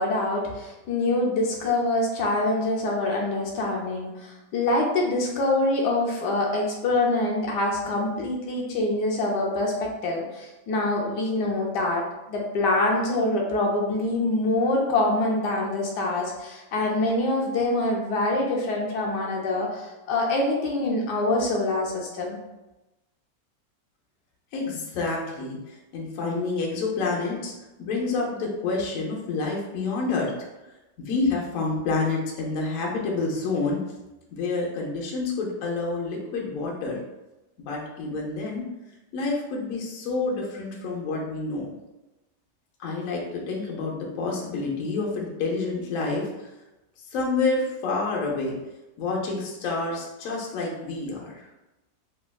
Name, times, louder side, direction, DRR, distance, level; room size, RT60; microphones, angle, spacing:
voice 1, 0.0-22.4, left 2 dB, 80° left, -1 dB, 1.2 m, -25 dB
voice 2, 24.5-27.5 27.8-30.3 31.0-33.8 34.3-37.0 37.6-38.6 39.1-41.7 42.8-46.5 47.1-48.5 49.0-51.4, left 3 dB, 60° left, -2 dB, 1.0 m, -28 dB
3.3 x 2.7 x 2.2 m, 1.0 s
omnidirectional pair, 1.8 m